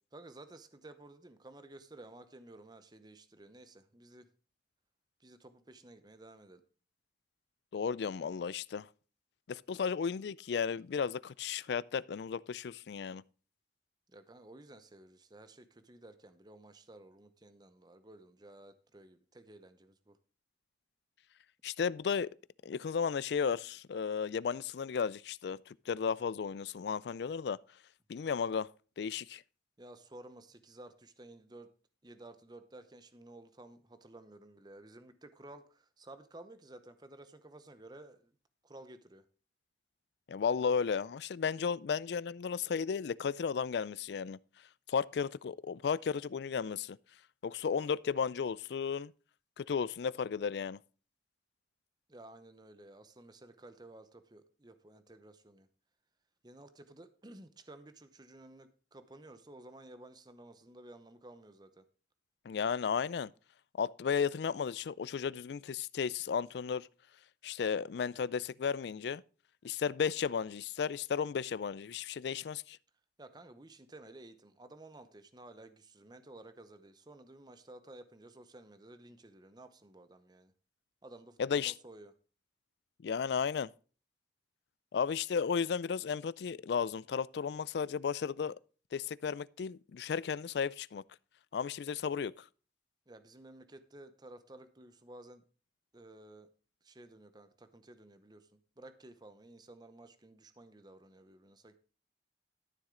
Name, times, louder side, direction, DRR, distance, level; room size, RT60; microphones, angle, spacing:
voice 1, 0.1-4.3 5.2-6.6 14.1-20.2 29.8-31.7 32.0-38.3 38.6-39.2 52.1-55.7 56.4-61.9 73.2-80.5 81.0-82.1 93.1-95.4 95.9-96.5 96.8-101.8, right 2 dB, 25° right, 0.8 m, -54 dB
voice 2, 7.7-8.9 9.5-13.2 21.6-22.3 22.6-27.6 28.1-28.7 29.0-29.4 40.3-44.4 44.9-47.0 47.4-49.1 49.6-50.8 62.5-63.3 63.8-66.9 67.4-69.2 69.6-72.8 81.4-81.7 83.0-83.7 84.9-88.5 88.9-91.0 91.5-92.4, left 6 dB, 65° left, 0.4 m, -34 dB
13.0 x 7.2 x 3.7 m
head